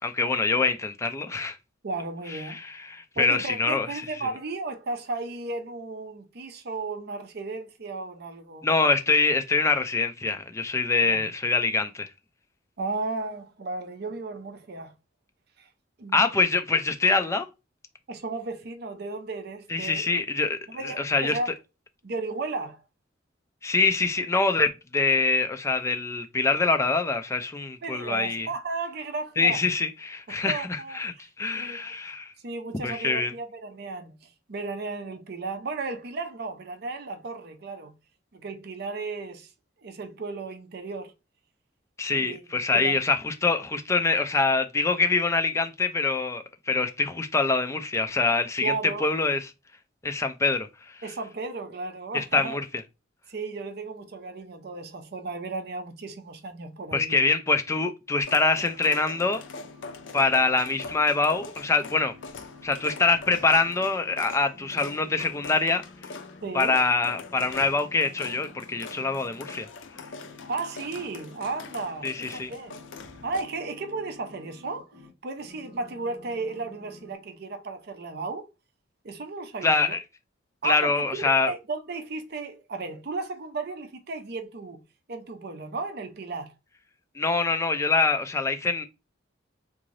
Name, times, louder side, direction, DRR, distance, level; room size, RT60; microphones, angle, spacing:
voice 1, 0.0-1.6 2.3-4.3 8.6-12.1 16.1-17.5 19.7-21.4 23.6-28.5 29.4-32.3 32.8-33.3 42.0-48.7 49.0-49.5 50.0-51.0 52.1-52.6 56.9-59.4 60.1-62.1 62.6-65.8 66.5-69.7 72.0-72.5 79.6-80.0 80.6-81.5 87.2-88.9, left 3 dB, 15° left, 0.4 m, -25 dB
voice 2, 1.8-2.6 3.2-8.7 11.1-11.3 12.8-14.9 15.6-15.7 16.0-16.2 18.1-20.0 20.7-21.5 22.0-22.8 27.8-29.6 30.3-31.0 31.5-31.9 32.4-34.2 34.5-37.9 38.3-39.5 39.8-41.1 42.2-42.4 42.7-43.0 48.6-49.1 51.0-52.6 53.3-57.2 66.4-66.8 70.5-72.8 73.2-74.9 75.2-78.5 79.0-80.0 80.6-81.0 81.5-84.8 85.1-86.5, right 3 dB, 55° right, 0.6 m, -34 dB
sound 1, 58.2-73.4, left 4 dB, 70° left, 0.5 m, -43 dB
sound 2, 59.1-64.2 64.5-66.9 67.2-69.6 69.9-75.1 75.4-77.1, left 2 dB, 20° right, 1.5 m, -51 dB
3.6 x 2.6 x 3.1 m
head